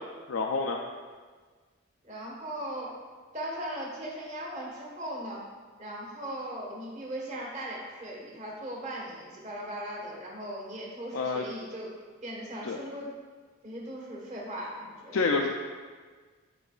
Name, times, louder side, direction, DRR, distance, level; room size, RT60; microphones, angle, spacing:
voice 1, 0.3-0.8 11.1-11.4 12.6-12.8 15.1-15.5, left 4 dB, 65° left, 1 dB, 0.4 m, -27 dB
voice 2, 2.0-2.9 3.3-5.4 5.8-11.9 12.2-13.1 13.6-15.3, right 1 dB, 30° right, -3 dB, 1.3 m, -38 dB
10.5 x 4.0 x 2.3 m, 1.5 s
head